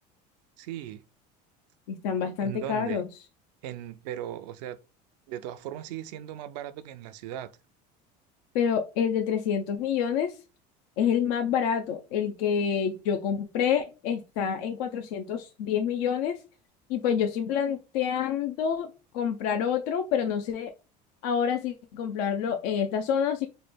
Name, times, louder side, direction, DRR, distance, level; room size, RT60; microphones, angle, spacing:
voice 1, 0.6-1.0 2.4-3.0 3.6-4.8 5.3-7.5, right 11 dB, 80° right, 0.5 m, -37 dB
voice 2, 1.9-3.1 8.5-10.3 11.0-16.4 16.9-20.7 21.2-23.5, left 7 dB, 75° left, 0.5 m, -27 dB
3.2 x 2.2 x 4.2 m
supercardioid pair, 95°, 21 cm